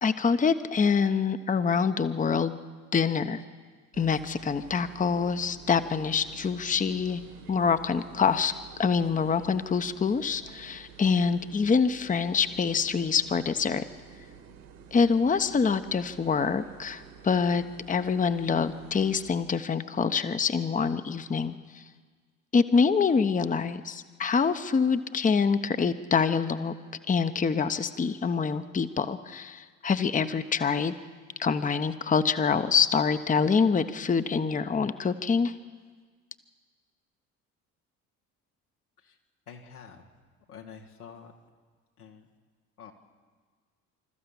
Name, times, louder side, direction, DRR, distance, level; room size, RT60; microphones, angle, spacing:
voice 1, 0.0-2.6 2.9-3.4 4.0-7.2 7.5-8.5 8.8-13.8 14.9-21.8 22.5-26.8 27.1-30.9 31.4-35.5, left 5 dB, 20° left, 11 dB, 0.9 m, -25 dB
sound 1, 3.9-19.4, right 7 dB, 65° right, 2.5 m, -50 dB
voice 2, 39.5-40.1 40.5-41.3 42.0-42.3 42.8-42.9, left 7 dB, 85° left, -1 dB, 1.9 m, -47 dB
27.0 x 14.0 x 7.2 m, 1.5 s
figure-of-eight pair, 55°, 44 cm